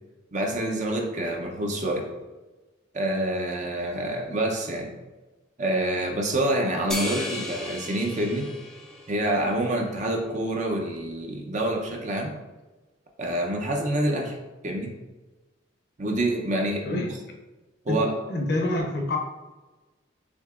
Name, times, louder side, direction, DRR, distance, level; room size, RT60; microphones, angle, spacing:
voice 1, 0.3-2.1 2.9-4.9 5.6-8.5 9.1-12.3 13.2-14.4 14.6-14.9 16.0-17.2 17.9-18.1, right 1 dB, 40° right, 2 dB, 0.6 m, -27 dB
sound 1, 6.9-9.6, left 1 dB, 5° left, 0.5 m, -34 dB
voice 2, 16.8-17.1 17.9-19.2, left 1 dB, 55° left, 1 dB, 0.7 m, -27 dB
6.2 x 2.8 x 2.4 m, 1.2 s
head